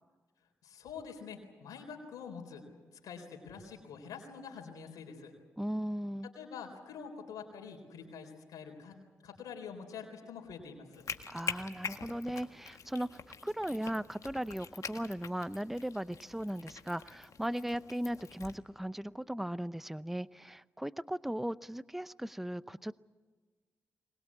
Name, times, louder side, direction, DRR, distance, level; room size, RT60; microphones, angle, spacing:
voice 1, 0.6-2.6 3.0-5.3 6.2-9.0 9.2-11.0, left 6 dB, 80° left, 2 dB, 3.9 m, -46 dB
voice 2, 5.6-6.3 11.3-22.9, equal, 5° right, 16 dB, 0.6 m, -37 dB
sound 1, 10.9-18.6, left 6 dB, 65° left, 1.8 m, -45 dB
22.5 x 21.0 x 8.5 m, 1.4 s
supercardioid pair, 40°, 6 cm